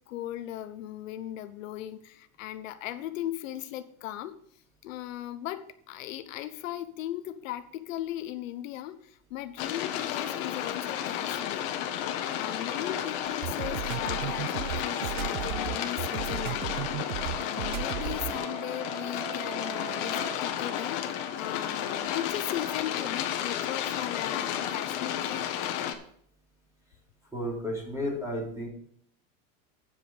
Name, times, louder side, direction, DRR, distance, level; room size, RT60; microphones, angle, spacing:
voice 1, 0.1-4.4 4.8-11.7 12.3-16.7 17.4-25.5, left 13 dB, 75° left, 10 dB, 1.0 m, -38 dB
sound 1, 9.6-25.9, left 10 dB, 50° left, 1.3 m, -32 dB
sound 2, 11.9-23.7, right 7 dB, 60° right, 2.8 m, -45 dB
sound 3, 13.3-18.4, right 16 dB, 85° right, 0.5 m, -35 dB
voice 2, 27.3-28.7, left 1 dB, 10° right, -3 dB, 3.8 m, -32 dB
10.0 x 7.6 x 5.0 m, 0.66 s
supercardioid pair, 160°, 39 cm